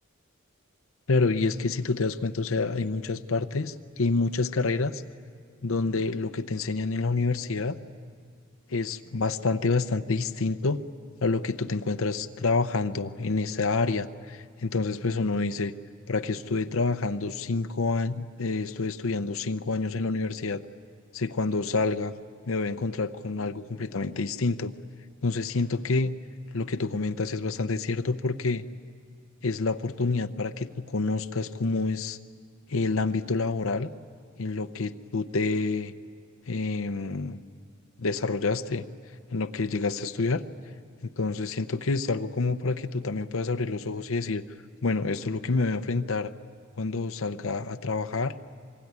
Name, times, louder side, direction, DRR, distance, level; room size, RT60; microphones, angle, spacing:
voice 1, 1.1-5.0 5.6-7.8 8.7-10.8 11.2-15.7 16.1-20.6 21.1-22.1 22.5-24.7 25.2-26.1 26.5-28.6 29.4-32.2 32.7-33.9 34.4-35.9 36.5-37.4 38.0-38.8 39.3-40.4 41.2-44.4 44.8-46.3 46.8-48.3, left 3 dB, 80° left, 9 dB, 0.7 m, -28 dB
25.5 x 22.5 x 9.6 m, 2.1 s
head